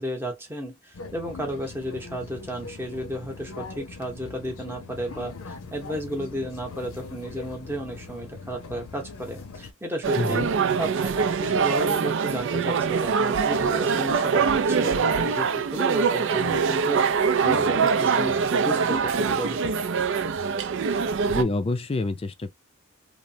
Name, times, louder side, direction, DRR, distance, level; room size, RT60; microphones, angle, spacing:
voice 1, 0.0-10.4 10.8-19.7, right 1 dB, 10° right, 0.8 m, -33 dB
sound 1, 0.9-9.7, left 3 dB, 75° left, 0.6 m, -41 dB
sound 2, 10.0-21.4, right 5 dB, 60° right, 0.4 m, -23 dB
voice 2, 10.2-10.5 21.3-22.5, left 2 dB, 25° left, 0.4 m, -27 dB
3.1 x 2.1 x 2.6 m
head